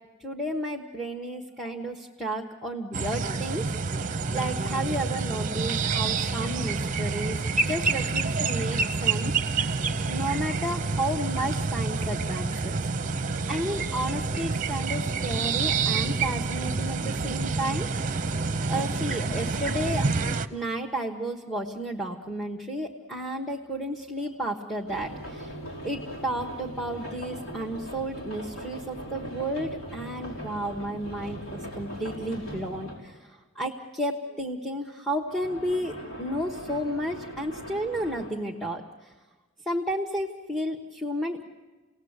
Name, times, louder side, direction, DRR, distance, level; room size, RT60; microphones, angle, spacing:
voice 1, 0.2-4.0 4.3-7.4 7.7-9.3 10.0-12.8 13.5-17.9 18.7-20.1 20.5-25.5 25.8-33.2 33.5-38.8 39.7-41.4, right 1 dB, 5° left, 0 dB, 1.2 m, -32 dB
sound 1, 2.9-20.5, right 4 dB, 40° right, 0.8 m, -28 dB
sound 2, 24.9-33.1 35.3-38.3, right 1 dB, 80° left, 5.3 m, -40 dB
28.5 x 18.5 x 8.1 m, 1.3 s
head